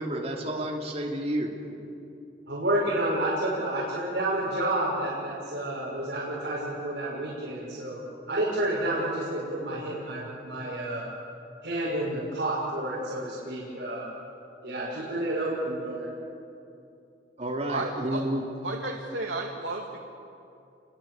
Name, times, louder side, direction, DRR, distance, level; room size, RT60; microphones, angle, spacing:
voice 1, 0.0-1.6 17.4-18.4, right 1 dB, 35° right, 0 dB, 3.3 m, -30 dB
voice 2, 2.5-8.0 8.3-11.1 11.6-14.1 14.6-16.1, right 1 dB, 65° right, -7 dB, 6.5 m, -30 dB
voice 3, 17.7-18.2 18.6-20.0, right 2 dB, 90° right, 1 dB, 2.3 m, -33 dB
29.5 x 23.5 x 8.0 m, 2.7 s
head